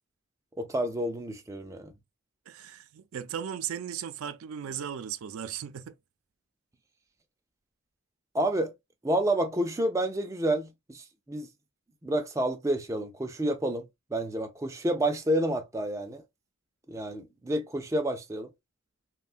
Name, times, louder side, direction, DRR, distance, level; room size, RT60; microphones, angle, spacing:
voice 1, 0.6-1.9 8.3-8.7 9.0-11.5 12.0-13.8 14.1-16.2 16.9-18.5, right 1 dB, 15° right, 0.3 m, -29 dB
voice 2, 2.5-6.0, right 9 dB, 85° right, 0.4 m, -36 dB
3.0 x 2.2 x 2.4 m
head